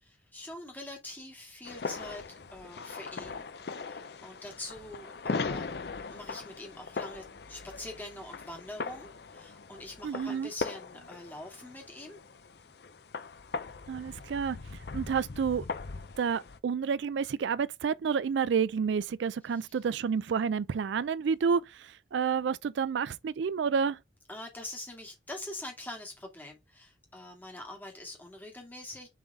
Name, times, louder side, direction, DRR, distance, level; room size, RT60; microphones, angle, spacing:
voice 1, 0.0-2.2 2.5-3.4 3.7-5.7 6.1-12.2 24.3-29.1, left 1 dB, 10° left, 2.0 m, -44 dB
sound 1, 1.6-16.6, left 4 dB, 55° left, 0.5 m, -40 dB
voice 2, 10.0-10.5 13.9-14.6 14.9-15.7 16.2-24.0, right 6 dB, 70° right, 0.3 m, -29 dB
7.1 x 3.9 x 3.5 m
head